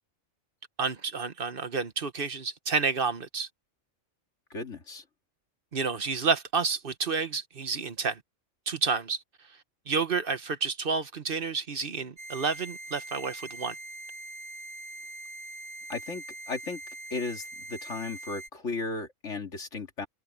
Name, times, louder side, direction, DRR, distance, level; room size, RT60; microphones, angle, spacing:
voice 1, 0.8-3.5 5.7-8.2 8.7-9.2 9.9-13.7, right 5 dB, 50° right, 1.3 m, -30 dB
voice 2, 4.5-5.0 15.9-16.8 17.1-20.1, left 3 dB, 70° left, 2.7 m, -35 dB
sound 1, 12.2-18.5, right 2 dB, 80° right, 3.9 m, -43 dB
omnidirectional pair, 1.3 m